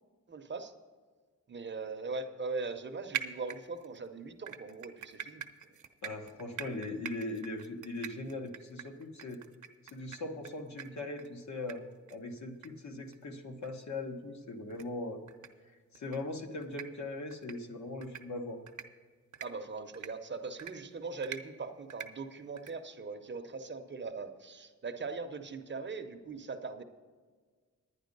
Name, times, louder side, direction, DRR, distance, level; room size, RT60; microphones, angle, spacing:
voice 1, 0.3-0.7 1.5-5.4 19.4-26.8, right 4 dB, 40° right, 7 dB, 0.7 m, -40 dB
sound 1, 3.1-4.0 4.5-10.5 10.8-10.9 11.2-11.3 11.7-11.8 12.1-12.2 12.6-12.7 13.1-13.2 13.6-13.7 14.7-14.8 15.3-15.5 16.0-16.2 16.6-16.9 17.3-17.6 18.0-18.2 18.7-18.9 19.3-19.5 19.9-20.1 20.6-20.7 21.2-21.4 21.9-22.1 22.6-22.7, right 8 dB, 75° right, 0.7 m, -42 dB
voice 2, 6.0-9.4 9.9-15.2 15.9-18.6, left 2 dB, 65° left, 4 dB, 1.2 m, -40 dB
10.5 x 9.9 x 5.3 m, 1.5 s
wide cardioid pair, 175°, 30 cm